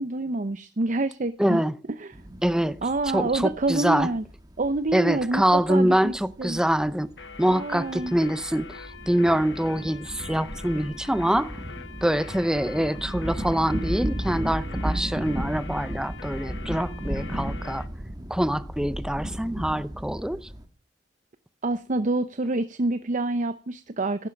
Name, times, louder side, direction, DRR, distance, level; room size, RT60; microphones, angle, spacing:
voice 1, 0.0-1.6 2.0-2.1 2.8-4.2 4.6-6.6 7.5-8.2 21.6-24.3, right 2 dB, 45° right, 0.7 m, -27 dB
voice 2, 1.4-1.7 2.4-2.8 3.1-4.1 4.9-7.1 7.4-11.5 12.0-17.9 18.3-20.5, right 1 dB, 5° right, 0.6 m, -25 dB
sound 1, 2.1-20.7, equal, 20° right, 1.6 m, -35 dB
sound 2, 7.2-17.9, left 5 dB, 75° left, 1.0 m, -43 dB
14.5 x 11.5 x 5.3 m
head